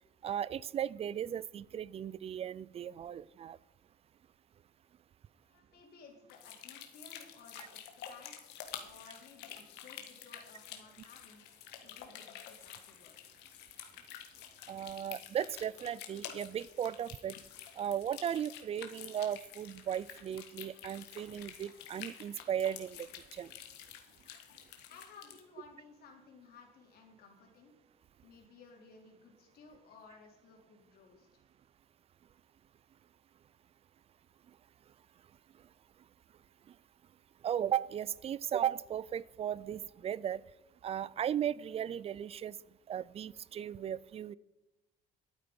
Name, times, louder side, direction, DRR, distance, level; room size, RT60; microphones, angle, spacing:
voice 1, 0.2-3.6 14.7-17.4 17.8-23.1 23.3-23.5 37.4-40.4 40.8-42.6 42.9-44.3, right 9 dB, 35° right, 22 dB, 0.4 m, -36 dB
voice 2, 5.4-7.8 8.1-8.5 8.8-11.4 11.8-13.2 24.8-27.7 28.2-31.4, left 4 dB, 65° left, 1 dB, 3.4 m, -57 dB
sound 1, 6.3-25.4, left 10 dB, 90° left, 1.6 m, -50 dB
12.5 x 8.7 x 5.2 m, 1.0 s
cardioid pair, 110°, 17 cm